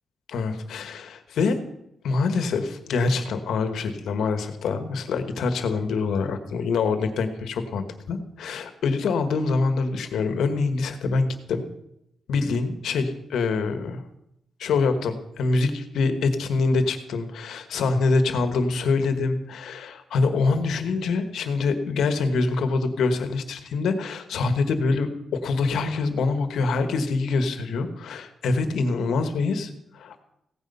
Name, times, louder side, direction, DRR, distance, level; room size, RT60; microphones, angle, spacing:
voice 1, 0.3-1.6 2.0-11.6 12.3-14.0 14.6-30.2, left 4 dB, 85° left, 8 dB, 1.5 m, -25 dB
16.0 x 9.5 x 5.7 m, 0.83 s
wide cardioid pair, 140°, 0 cm